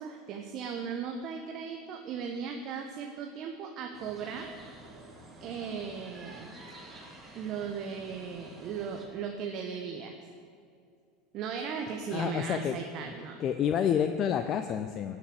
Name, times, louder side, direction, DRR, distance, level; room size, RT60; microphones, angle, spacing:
voice 1, 0.0-4.5 5.4-6.5 7.3-10.3 11.3-13.4, right 6 dB, 50° right, 3 dB, 1.1 m, -37 dB
sound 1, 3.9-9.1, right 2 dB, 20° right, 2.9 m, -49 dB
voice 2, 12.1-13.1 13.4-15.2, left 8 dB, 40° left, 8 dB, 0.6 m, -29 dB
16.5 x 6.4 x 8.0 m, 2.4 s
hypercardioid pair, 75°, 0 cm